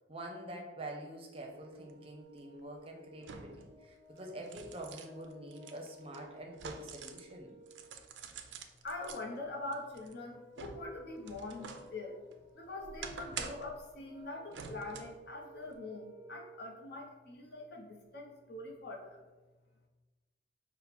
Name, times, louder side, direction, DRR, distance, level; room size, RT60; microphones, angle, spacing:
voice 1, 0.1-7.5, right 1 dB, 30° right, 2 dB, 0.6 m, -46 dB
Brass instrument, 1.5-8.0 10.1-16.7, right 1 dB, 15° left, 1.3 m, -57 dB
sound 1, 1.9-2.0 3.2-3.7 4.2-7.3 7.7-9.2 9.7-11.9 12.3-13.8 14.5-15.2 15.6-15.8, right 5 dB, 75° right, 0.4 m, -47 dB
voice 2, 8.8-12.2 12.5-19.2, left 2 dB, 60° left, 0 dB, 0.8 m, -44 dB
5.5 x 2.1 x 4.2 m, 1.2 s
head